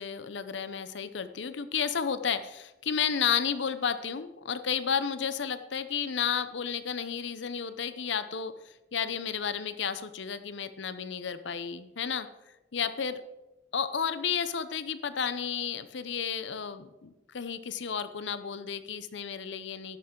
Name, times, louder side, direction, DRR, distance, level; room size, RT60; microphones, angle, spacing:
voice 1, 0.0-12.3 12.7-13.2 13.7-20.0, left 7 dB, 75° left, 12 dB, 0.7 m, -32 dB
11.5 x 9.6 x 3.8 m, 1.0 s
head